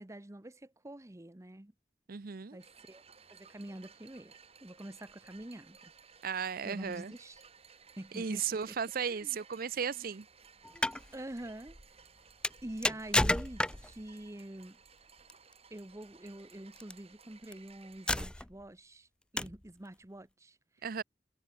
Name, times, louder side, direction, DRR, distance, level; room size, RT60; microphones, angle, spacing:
voice 1, 0.0-1.7 2.5-3.0 3.3-4.3 4.6-5.9 6.6-7.4 8.0-8.8 9.1-9.4 9.9-10.1 11.1-11.8 12.6-14.8 15.7-19.1 19.3-20.9, right 1 dB, 15° right, 0.9 m, -46 dB
voice 2, 2.1-2.6 6.2-7.1 8.1-10.2 20.8-21.0, right 6 dB, 55° right, 0.6 m, -35 dB
sound 1, 2.6-18.2, right 5 dB, 35° right, 3.0 m, -59 dB
sound 2, 10.6-11.0 12.4-14.0 15.3-15.5 16.8-16.9 17.5-17.6 18.1-18.6 19.4-19.7, left 1 dB, 5° left, 0.3 m, -31 dB
head